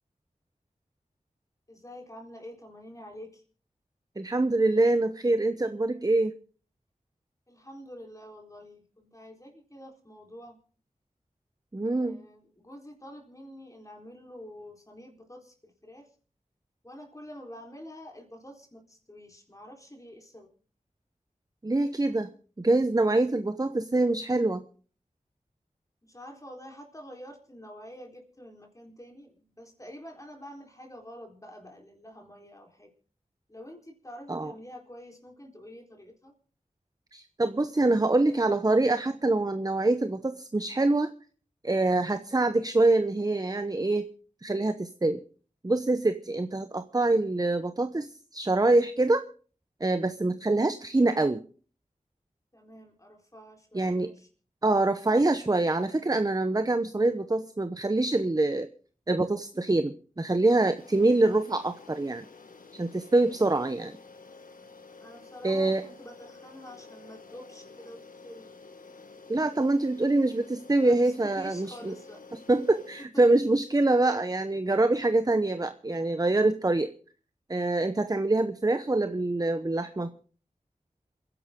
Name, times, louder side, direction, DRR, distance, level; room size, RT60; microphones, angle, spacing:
voice 1, 1.7-3.4 7.5-10.6 11.8-16.1 16.8-20.5 26.0-32.9 33.5-36.3 52.5-54.3 65.0-68.5 70.8-72.2 73.1-73.2, equal, 25° left, 2 dB, 4.1 m, -47 dB
voice 2, 4.2-6.3 11.7-12.2 21.6-22.3 22.6-24.6 34.3-34.5 37.1-41.1 41.6-44.1 44.4-45.2 45.6-49.2 49.8-51.4 53.7-54.1 54.6-58.7 59.1-62.2 62.7-64.0 65.4-65.8 69.3-71.9 72.5-76.9 77.5-80.1, right 2 dB, 30° right, 10 dB, 0.9 m, -25 dB
sound 1, 60.8-73.1, left 4 dB, 90° left, 1.5 m, -50 dB
27.5 x 11.0 x 3.8 m, 0.42 s
wide cardioid pair, 50°, 14 cm